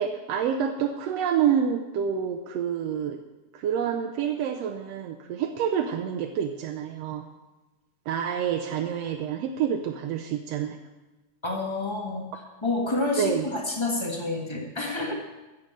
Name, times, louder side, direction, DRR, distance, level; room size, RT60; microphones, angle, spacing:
voice 1, 0.0-3.2 3.5-7.3 8.1-10.8 13.2-13.5, right 8 dB, 70° right, 3 dB, 1.7 m, -28 dB
voice 2, 11.4-12.2 12.6-15.1, left 2 dB, 20° left, 0 dB, 0.8 m, -28 dB
14.5 x 7.5 x 7.7 m, 1.1 s
omnidirectional pair, 3.4 m